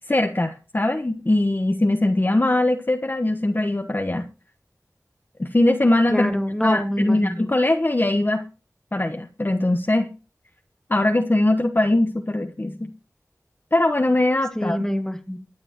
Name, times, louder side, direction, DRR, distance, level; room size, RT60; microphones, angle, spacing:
voice 1, 0.1-4.2 5.4-6.3 6.6-8.4 8.9-10.1 10.9-12.9 13.7-14.8, left 1 dB, 35° left, 5 dB, 1.2 m, -21 dB
voice 2, 6.1-7.5 14.5-15.4, equal, 10° left, 6 dB, 2.5 m, -26 dB
23.5 x 8.7 x 3.1 m, 0.33 s
wide cardioid pair, 55°, 6 cm